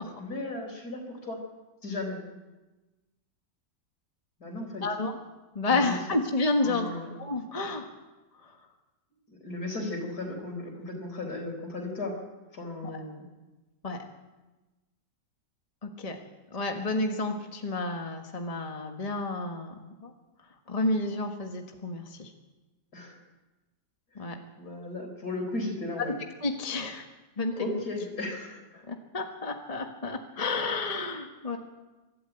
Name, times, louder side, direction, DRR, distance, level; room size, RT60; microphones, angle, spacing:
voice 1, 0.0-1.4 1.8-2.2 4.4-4.9 5.7-6.0 6.6-7.0 9.3-12.2 12.5-13.3 22.9-23.2 24.1-26.2 27.5-28.8, left 2 dB, 60° left, 3 dB, 4.6 m, -36 dB
voice 2, 4.8-5.1 5.5-6.9 7.1-7.8 8.3-8.6 13.8-14.0 15.8-16.2 16.5-20.1 20.4-22.3 24.1-24.4 26.0-26.1 26.4-27.1 27.4-27.8 28.9-31.6, left 2 dB, 20° left, 4 dB, 1.5 m, -30 dB
24.0 x 12.5 x 9.0 m, 1.1 s
omnidirectional pair, 1.9 m